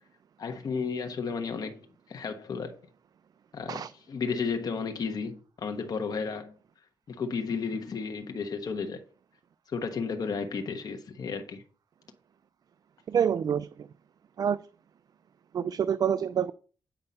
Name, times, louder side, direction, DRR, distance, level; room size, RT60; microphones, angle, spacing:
voice 1, 0.4-2.8 3.5-6.5 7.1-9.0 9.7-11.6, left 5 dB, 55° left, 1.1 m, -33 dB
voice 2, 13.1-13.9 14.4-14.6 15.5-16.5, right 8 dB, 55° right, 0.4 m, -27 dB
8.9 x 5.4 x 5.4 m
cardioid pair, 90°, 8 cm